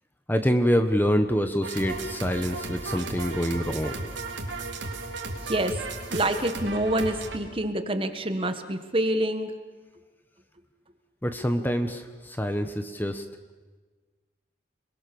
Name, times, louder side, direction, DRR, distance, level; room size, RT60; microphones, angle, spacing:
voice 1, 0.3-4.0 11.2-13.2, equal, 10° left, 8 dB, 1.2 m, -26 dB
sound 1, 1.6-7.4, right 3 dB, 75° right, 3.5 m, -35 dB
voice 2, 5.4-5.8 6.1-9.5, right 1 dB, 30° right, 8 dB, 1.5 m, -27 dB
30.0 x 21.5 x 7.0 m, 1.3 s
head